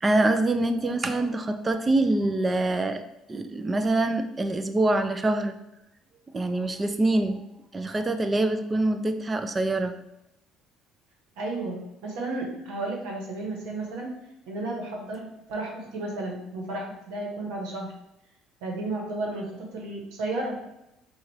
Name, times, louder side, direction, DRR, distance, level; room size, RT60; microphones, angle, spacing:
voice 1, 0.0-3.0 3.3-5.6 6.3-7.5 7.7-9.9, right 2 dB, 20° right, 9 dB, 0.4 m, -25 dB
voice 2, 11.4-14.1 14.5-17.9 18.6-20.6, right 2 dB, 85° right, 0 dB, 1.1 m, -33 dB
4.1 x 2.4 x 4.7 m, 0.86 s
cardioid pair, 110°, 0 cm